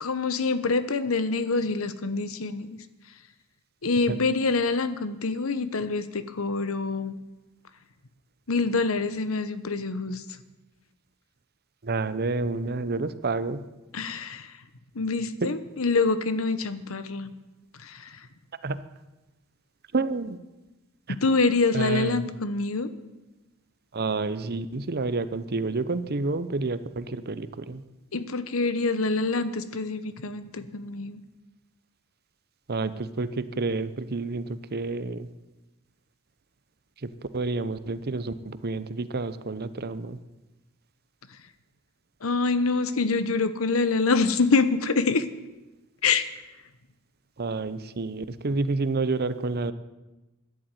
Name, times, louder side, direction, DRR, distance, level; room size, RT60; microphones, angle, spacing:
voice 1, 0.0-2.7 3.8-7.1 8.5-10.2 13.9-14.5 14.9-17.3 17.8-18.1 21.1-22.9 28.1-31.2 42.2-45.2 46.0-46.3, left 4 dB, 75° left, 13 dB, 1.0 m, -26 dB
voice 2, 11.8-13.6 15.4-15.5 18.6-18.8 19.9-20.4 21.7-22.2 23.9-27.8 32.7-35.3 37.0-40.2 47.4-49.7, right 3 dB, 50° right, 14 dB, 0.8 m, -29 dB
13.0 x 11.0 x 9.1 m, 1.1 s
head